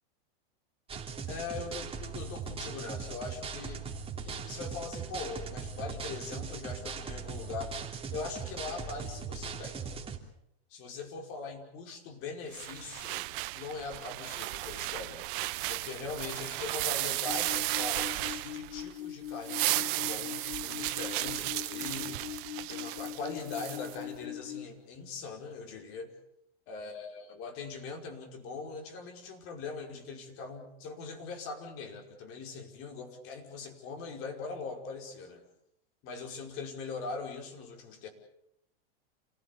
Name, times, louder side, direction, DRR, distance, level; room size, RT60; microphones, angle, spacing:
sound 1, 0.9-10.2, right 5 dB, 20° right, 3.2 m, -39 dB
voice 1, 1.3-3.9 4.2-7.7 8.1-9.8 10.7-13.3 13.5-15.4 15.7-22.2 22.7-26.1 26.7-35.4 36.0-38.1, left 4 dB, 45° left, 4 dB, 5.3 m, -41 dB
sound 2, 12.5-18.9 19.3-24.0, right 19 dB, 55° right, 1.2 m, -34 dB
sound 3, 17.3-24.7, left 11 dB, 85° left, 2.4 m, -42 dB
28.5 x 16.5 x 8.5 m, 0.80 s
supercardioid pair, 125°, 30 cm